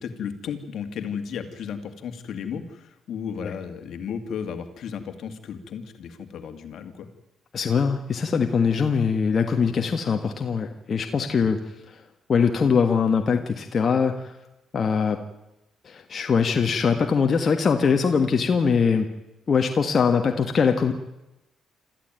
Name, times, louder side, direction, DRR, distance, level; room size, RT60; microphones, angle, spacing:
voice 1, 0.0-7.1 11.4-11.5, left 7 dB, 70° left, 7 dB, 2.4 m, -34 dB
voice 2, 7.5-11.6 11.9-12.0 12.3-14.3 14.7-15.2 15.8-19.1 19.5-20.9, left 6 dB, 45° left, 5 dB, 1.6 m, -22 dB
27.0 x 14.0 x 9.1 m, 0.98 s
cardioid pair, 90°, 0 cm